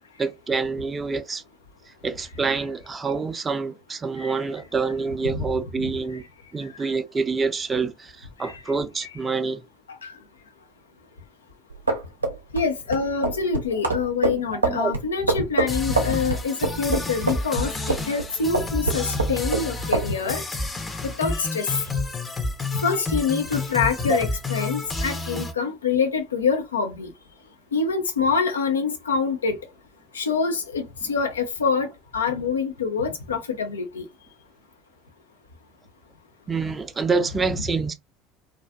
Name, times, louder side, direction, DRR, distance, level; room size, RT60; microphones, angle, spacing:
voice 1, 0.2-1.4 1.9-6.2 6.5-9.6 14.3-14.9 24.1-24.2 36.5-37.9, right 4 dB, 25° right, 0.4 m, -27 dB
sound 1, 11.7-18.3 18.5-19.7 19.9-20.1, right 3 dB, 85° right, 0.5 m, -24 dB
voice 2, 12.5-20.4 21.0-21.8 22.8-27.1 27.7-29.6 30.1-34.0, left 5 dB, 80° left, 0.5 m, -25 dB
sound 2, 15.7-25.5, left 2 dB, 20° left, 0.6 m, -30 dB
2.4 x 2.3 x 2.2 m
figure-of-eight pair, 65°, 0 cm